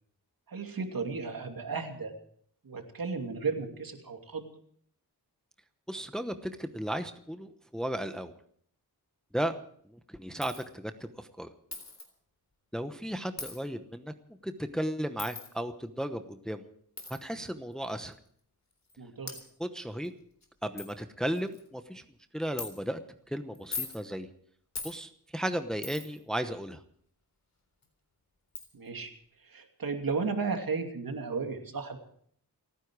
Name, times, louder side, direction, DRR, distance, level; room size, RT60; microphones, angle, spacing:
voice 1, 0.5-2.1 2.6-4.5 19.0-19.3 28.7-29.1 29.4-32.0, right 4 dB, 60° right, 4 dB, 2.7 m, -34 dB
voice 2, 5.9-8.3 9.3-9.6 9.9-11.5 12.7-14.1 14.4-16.6 17.1-18.2 19.6-20.1 20.6-22.0 22.3-23.0 23.3-24.3 24.8-26.8, equal, ahead, 8 dB, 0.9 m, -35 dB
Coin (dropping), 10.4-10.7 11.7-12.1 13.4-13.6 15.2-15.5 17.0-17.2 18.1-18.2 18.9-19.0 19.3-19.4 20.0-20.1 20.4-20.5 20.8-20.9 21.3-21.7 22.6-22.7 23.5-24.0 24.7-25.0 25.8-26.2 27.8-27.9 28.5-28.7, left 4 dB, 45° left, 3.8 m, -39 dB
29.5 x 10.0 x 4.8 m, 0.63 s
wide cardioid pair, 100°, 39 cm